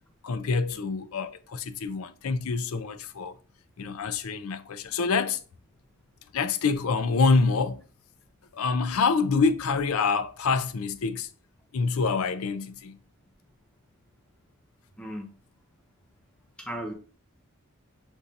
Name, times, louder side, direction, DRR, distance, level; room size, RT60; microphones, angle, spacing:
voice 1, 0.2-3.4 3.8-5.4 6.3-7.8 8.5-11.3 11.7-13.0, left 4 dB, 80° left, 0.5 m, -26 dB
voice 2, 15.0-15.3 16.6-16.9, right 1 dB, 5° left, 0.7 m, -36 dB
6.9 x 2.7 x 2.5 m
head